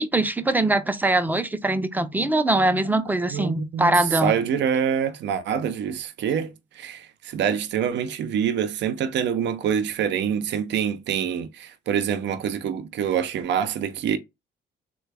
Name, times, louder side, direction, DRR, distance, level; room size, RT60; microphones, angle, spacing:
voice 1, 0.0-4.3, right 2 dB, 10° right, 0.5 m, -22 dB
voice 2, 3.3-14.2, right 8 dB, 65° right, 0.5 m, -26 dB
3.3 x 2.2 x 3.3 m
cardioid pair, 90°, 20 cm